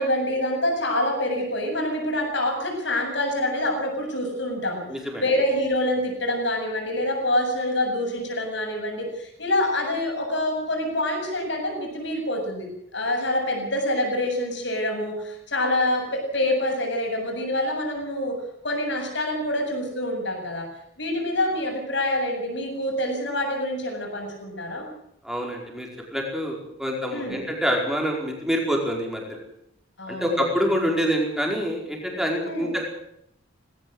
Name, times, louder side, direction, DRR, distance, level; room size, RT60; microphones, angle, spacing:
voice 1, 0.0-18.4 18.6-20.7 21.0-24.9 27.1-27.4 30.0-30.4 32.5-32.7, left 1 dB, 60° left, 2 dB, 7.7 m, -26 dB
voice 2, 4.9-5.2 25.2-29.4 30.1-32.8, equal, ahead, 0 dB, 4.9 m, -26 dB
19.5 x 17.5 x 7.9 m, 0.74 s
head